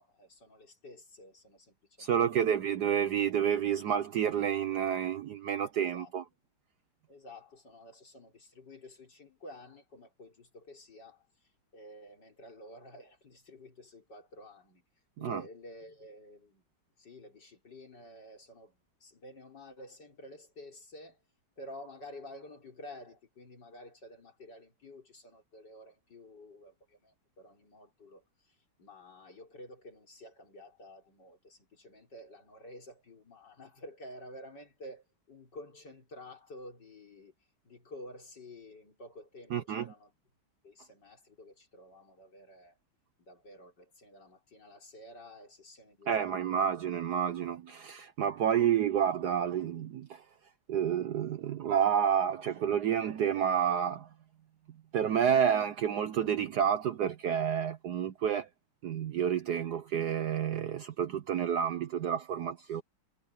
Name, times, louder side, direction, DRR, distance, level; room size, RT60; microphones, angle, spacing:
voice 1, 0.0-2.5 5.9-6.1 7.1-11.3 11.7-14.8 15.2-16.6 17.0-21.2 21.6-37.3 37.6-40.1 40.6-42.8 43.2-46.6, left 1 dB, 55° left, 4.9 m, -51 dB
voice 2, 2.0-6.2 15.2-15.4 39.5-39.8 46.1-50.2 50.7-54.1 54.9-58.5 58.8-62.8, right 8 dB, 65° right, 1.1 m, -29 dB
omnidirectional pair, 2.3 m